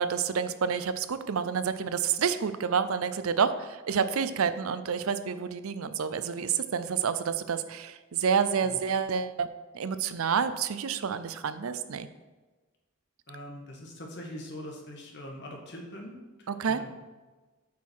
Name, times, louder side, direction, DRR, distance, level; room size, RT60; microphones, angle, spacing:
voice 1, 0.0-9.5 9.7-12.1 16.5-16.8, right 6 dB, 85° right, 12 dB, 0.5 m, -29 dB
voice 2, 13.3-16.9, left 1 dB, 55° left, 0 dB, 1.7 m, -43 dB
8.5 x 5.6 x 4.7 m, 1.3 s
head